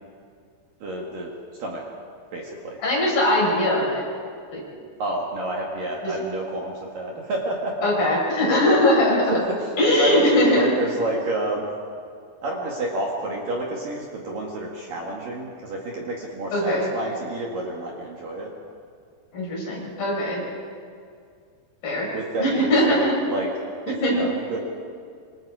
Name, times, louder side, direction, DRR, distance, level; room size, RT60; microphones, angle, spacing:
voice 1, 0.8-1.3 1.6-1.8 2.3-2.8 5.0-8.0 9.3-11.7 12.4-18.5 22.1-24.6, right 2 dB, 55° right, -2 dB, 3.1 m, -29 dB
voice 2, 2.8-4.0 4.5-4.6 6.0-6.1 7.8-9.4 9.8-10.7 16.5-16.9 19.3-20.5 21.8-22.1 22.4-23.1 24.0-24.1, left 1 dB, 50° left, -3 dB, 7.6 m, -20 dB
27.0 x 25.5 x 4.9 m, 2.2 s
omnidirectional pair, 5.6 m